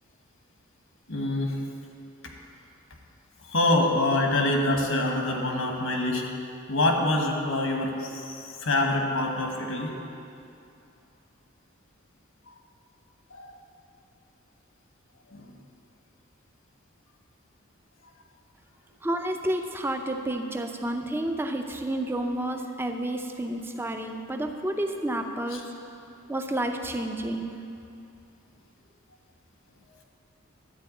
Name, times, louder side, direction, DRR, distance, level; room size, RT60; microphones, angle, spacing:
voice 1, 1.1-1.6 2.2-2.3 3.4-6.2 6.7-10.0 12.5-12.6 13.3-13.6 15.3-15.6 25.5-25.6, left 2 dB, 75° left, 1 dB, 1.3 m, -26 dB
voice 2, 19.0-25.7 26.3-27.5, right 1 dB, 10° right, 4 dB, 0.5 m, -30 dB
12.0 x 4.5 x 8.3 m, 2.7 s
head